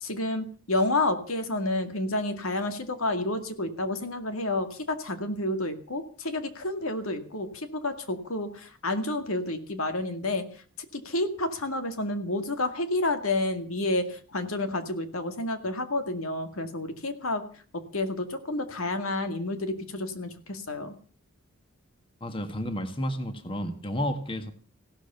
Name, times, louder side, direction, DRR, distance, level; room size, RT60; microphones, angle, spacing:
voice 1, 0.0-10.4 10.9-17.4 17.7-20.9, left 2 dB, 80° left, 8 dB, 2.2 m, -30 dB
voice 2, 22.2-24.5, equal, 25° left, 8 dB, 1.7 m, -31 dB
16.0 x 13.0 x 6.8 m, 0.43 s
head